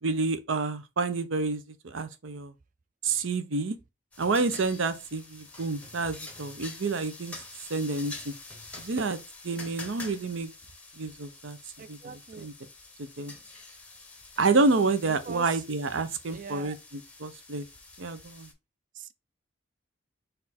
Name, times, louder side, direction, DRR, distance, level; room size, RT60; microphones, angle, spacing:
voice 1, 0.0-2.5 3.0-3.8 4.2-7.4 7.7-8.3 8.8-9.2 9.4-10.5 11.0-11.6 11.9-12.0 12.4-12.5 13.0-13.3 14.4-17.7 18.0-18.5, right 3 dB, 85° right, 0.6 m, -29 dB
sound 1, 4.1-18.5, left 3 dB, 5° left, 0.7 m, -47 dB
voice 2, 11.8-12.5 15.3-15.6 16.3-16.8 18.9-19.1, right 6 dB, 40° right, 0.3 m, -42 dB
4.2 x 2.6 x 4.1 m
head